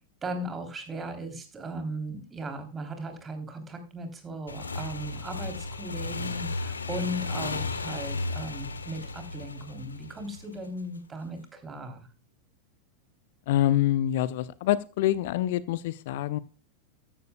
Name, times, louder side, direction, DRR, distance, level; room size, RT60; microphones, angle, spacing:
voice 1, 0.2-12.0, right 1 dB, 20° right, 6 dB, 3.3 m, -37 dB
Motorcycle / Engine, 4.5-10.8, left 3 dB, 75° left, 1.4 m, -34 dB
voice 2, 13.5-16.4, left 13 dB, 50° left, 19 dB, 0.6 m, -26 dB
14.5 x 12.0 x 2.3 m, 0.33 s
figure-of-eight pair, 90°, 0 cm